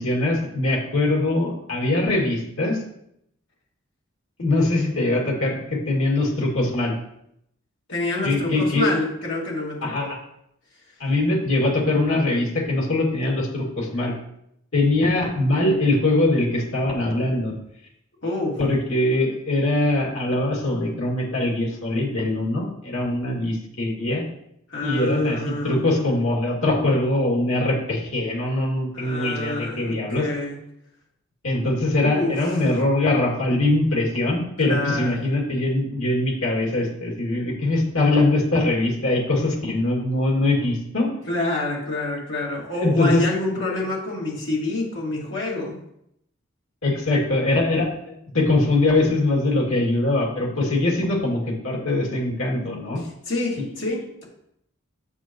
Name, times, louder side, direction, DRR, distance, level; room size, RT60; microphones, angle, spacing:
voice 1, 0.0-2.8 4.4-6.9 8.2-8.9 9.8-10.2 11.0-14.1 14.7-17.5 18.6-24.3 24.8-30.3 31.4-41.1 42.8-43.2 46.8-53.0 53.6-53.7, left 2 dB, 75° left, -2 dB, 2.5 m, -22 dB
voice 2, 7.9-10.1 18.2-18.6 24.7-26.0 28.9-30.6 32.0-32.6 34.7-35.1 41.3-45.8 53.0-54.2, left 2 dB, 55° left, -4 dB, 2.4 m, -27 dB
8.0 x 7.0 x 3.1 m, 0.76 s
head